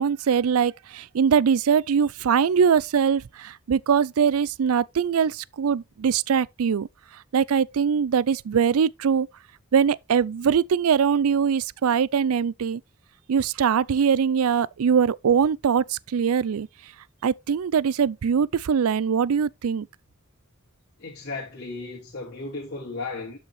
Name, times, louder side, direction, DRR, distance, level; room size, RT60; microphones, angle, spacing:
voice 1, 0.0-6.9 7.3-9.3 9.7-12.8 13.3-16.7 17.2-19.9, right 7 dB, 70° right, 0.4 m, -22 dB
voice 2, 21.0-23.4, left 3 dB, 50° left, 2.3 m, -35 dB
12.0 x 5.3 x 3.3 m
head